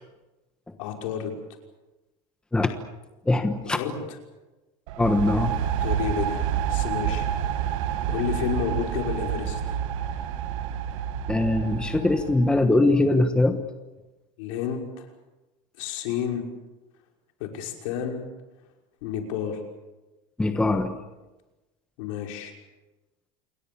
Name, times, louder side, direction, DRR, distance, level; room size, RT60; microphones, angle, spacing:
voice 1, 0.8-1.3 3.6-4.2 5.8-6.4 6.7-7.2 7.7-7.8 8.1-9.8 14.4-15.1 15.8-16.6 17.4-18.2 19.0-19.6 22.0-22.5, left 8 dB, 70° left, 2 dB, 5.7 m, -31 dB
voice 2, 3.3-3.8 5.0-5.6 11.3-13.6 20.4-20.9, left 2 dB, 5° left, 7 dB, 1.2 m, -22 dB
sound 1, 4.9-12.6, right 9 dB, 75° right, 1.9 m, -28 dB
28.0 x 22.0 x 7.1 m, 1.1 s
cardioid pair, 170°, 17 cm